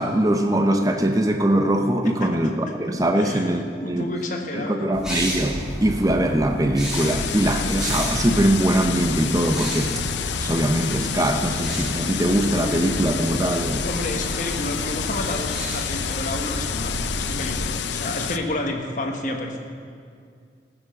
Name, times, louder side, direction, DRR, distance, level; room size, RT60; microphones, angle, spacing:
voice 1, 0.0-4.1 4.5-9.9 10.4-13.9, right 1 dB, 20° right, 5 dB, 0.6 m, -22 dB
voice 2, 2.2-2.5 3.1-3.5 3.8-5.0 13.8-19.6, left 1 dB, 45° left, 2 dB, 1.3 m, -30 dB
sound 1, 4.9-17.6, equal, 5° right, 2.5 m, -32 dB
sound 2, 6.9-18.4, left 7 dB, 80° left, 0.5 m, -29 dB
14.5 x 7.8 x 6.4 m, 2.2 s
head